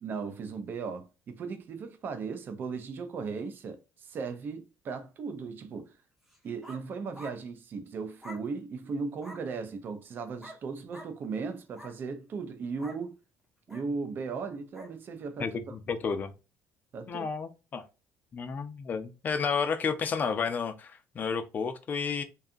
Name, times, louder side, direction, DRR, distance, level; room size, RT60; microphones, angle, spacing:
voice 1, 0.0-5.9 6.4-13.2 13.7-15.8 16.9-17.2, right 4 dB, 40° right, 0.5 m, -37 dB
sound 1, 6.3-6.8 7.1-7.4 8.2-8.5 9.2-9.4 10.4-10.6 10.9-11.1 11.6-12.0 12.8-13.0 13.7-13.9 14.7-14.9, equal, 5° right, 0.7 m, -46 dB
voice 2, 15.4-16.3 17.1-17.8 18.3-22.2, left 5 dB, 35° left, 0.5 m, -31 dB
2.7 x 2.3 x 2.4 m
cardioid pair, 130°, 5 cm